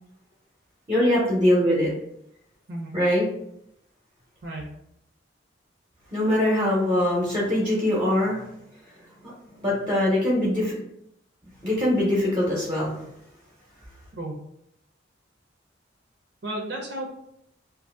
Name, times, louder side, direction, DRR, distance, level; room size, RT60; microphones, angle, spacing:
voice 1, 0.9-1.9 2.9-3.2 6.1-8.5 9.6-10.8 11.6-13.0, left 1 dB, 25° right, -6 dB, 0.9 m, -22 dB
voice 2, 4.4-4.7 14.1-14.4 16.4-17.1, right 1 dB, 60° right, -1 dB, 0.7 m, -33 dB
2.7 x 2.6 x 3.8 m, 0.76 s
head